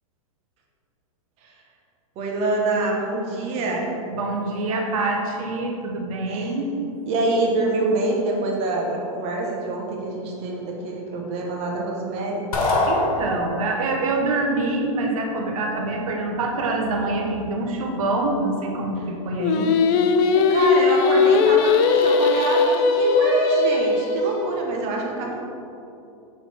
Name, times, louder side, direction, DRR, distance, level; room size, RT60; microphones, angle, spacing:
voice 1, 2.2-3.9 6.3-6.5 7.1-12.8 20.3-25.4, right 2 dB, 35° right, -1 dB, 1.1 m, -25 dB
voice 2, 4.1-6.7 12.9-19.7, right 2 dB, 70° right, 1 dB, 1.1 m, -25 dB
sound 1, 12.5-13.8, left 2 dB, 90° left, 1.5 m, -23 dB
Singing, 19.4-24.6, left 4 dB, 40° left, 0.4 m, -19 dB
6.3 x 4.1 x 4.1 m, 2.7 s
supercardioid pair, 145°, 18 cm